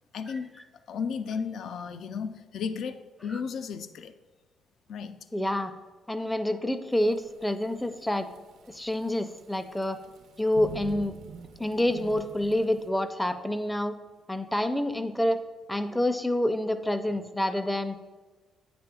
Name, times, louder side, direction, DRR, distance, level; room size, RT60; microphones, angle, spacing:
voice 1, 0.1-0.5 0.9-4.2 4.9-5.2, left 6 dB, 70° left, 11 dB, 0.3 m, -34 dB
voice 2, 5.3-5.7 6.1-8.3 8.7-10.0 10.4-11.1 11.6-14.0 14.3-15.4 15.7-18.0, left 1 dB, 10° left, 10 dB, 0.4 m, -27 dB
Thunderstorm / Rain, 6.9-12.9, right 6 dB, 80° right, 0.4 m, -46 dB
8.7 x 5.1 x 2.3 m, 1.3 s
cardioid pair, 90°, 0 cm